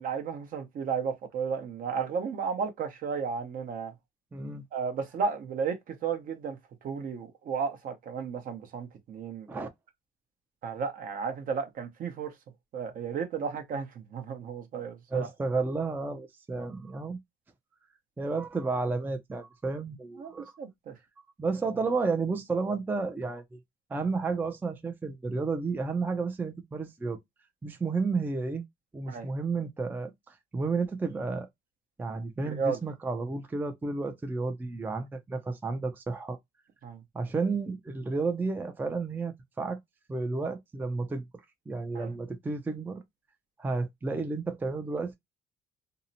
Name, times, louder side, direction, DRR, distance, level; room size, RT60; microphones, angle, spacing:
voice 1, 0.0-3.9 4.7-6.6 6.8-9.7 10.6-12.3 12.7-15.3 16.6-16.7 20.2-20.9 29.1-29.3 32.4-32.8 36.8-37.0 41.9-42.1, right 6 dB, 55° right, 0.8 m, -33 dB
voice 2, 4.3-4.6 9.5-9.7 15.1-17.2 18.2-20.5 21.4-23.6 23.9-27.2 27.6-28.6 28.9-31.5 32.0-36.4 37.1-39.8 40.1-41.2 41.7-43.0 43.6-45.2, right 4 dB, 10° right, 0.4 m, -32 dB
2.7 x 2.0 x 2.6 m
cardioid pair, 110°, 17 cm